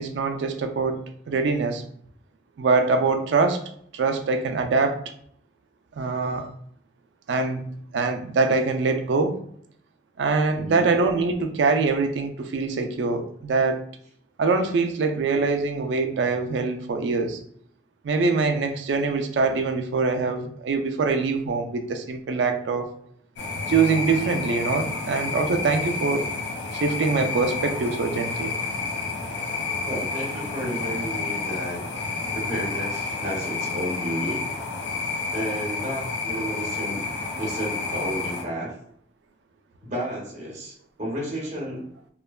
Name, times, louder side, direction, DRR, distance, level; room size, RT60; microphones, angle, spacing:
voice 1, 0.0-1.8 2.6-3.6 3.9-5.0 6.0-6.5 7.3-7.6 7.9-9.4 10.2-13.8 14.4-17.4 18.0-22.9 23.7-26.3 26.7-28.5, right 4 dB, 80° right, 0.4 m, -24 dB
voice 2, 10.5-10.9 29.9-31.8 32.3-34.4 35.3-37.1 37.4-38.7 39.8-41.9, right 1 dB, 40° right, 0.8 m, -32 dB
sound 1, 23.4-38.4, left 4 dB, 75° left, 0.6 m, -30 dB
3.1 x 2.1 x 2.3 m
head